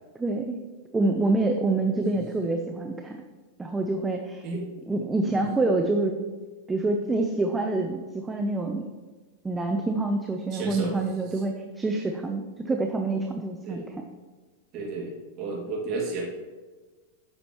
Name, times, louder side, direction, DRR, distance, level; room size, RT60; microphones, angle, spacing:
voice 1, 0.1-0.6 0.9-3.2 3.6-4.5 4.9-6.1 6.7-8.8 9.4-13.8, right 2 dB, 10° right, 3 dB, 0.7 m, -26 dB
voice 2, 10.5-10.9 13.6-13.8 14.7-16.2, right 3 dB, 40° right, -3 dB, 2.3 m, -32 dB
9.8 x 7.2 x 3.0 m, 1.3 s
hypercardioid pair, 125°, 0 cm